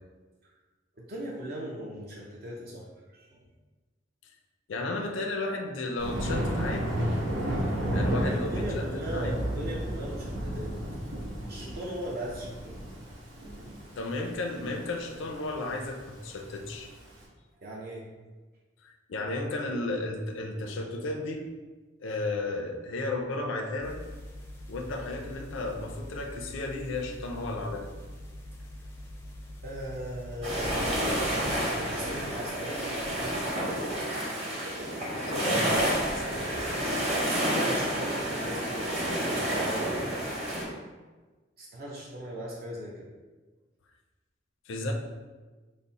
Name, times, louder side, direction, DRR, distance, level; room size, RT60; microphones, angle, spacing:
voice 1, 1.0-3.5 7.8-10.7 11.5-12.8 13.1-13.2 17.6-18.1 29.6-33.4 35.4-35.6 36.2-36.7 37.0-40.0 41.6-43.1, equal, 50° right, -3 dB, 0.5 m, -39 dB
voice 2, 4.7-6.9 7.9-9.4 14.0-16.9 18.8-21.5 22.0-24.0 24.7-27.9 35.2-35.7 36.1-36.5 44.7-44.9, left 2 dB, 75° left, 2 dB, 0.4 m, -34 dB
Thunder, 6.0-17.1, equal, 90° right, 1.0 m, -32 dB
sound 1, 23.8-31.3, left 1 dB, 15° left, 0.4 m, -44 dB
sound 2, 30.4-40.6, right 1 dB, 35° right, 0.9 m, -29 dB
4.0 x 2.0 x 4.0 m, 1.3 s
head